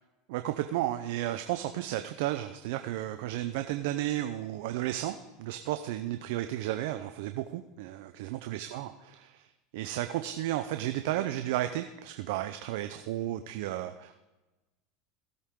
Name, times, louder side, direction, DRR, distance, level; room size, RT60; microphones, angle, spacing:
voice 1, 0.3-9.5 9.7-14.1, right 13 dB, 70° right, 8 dB, 0.6 m, -33 dB
17.0 x 8.2 x 3.8 m, 1.1 s
hypercardioid pair, 100°, 0 cm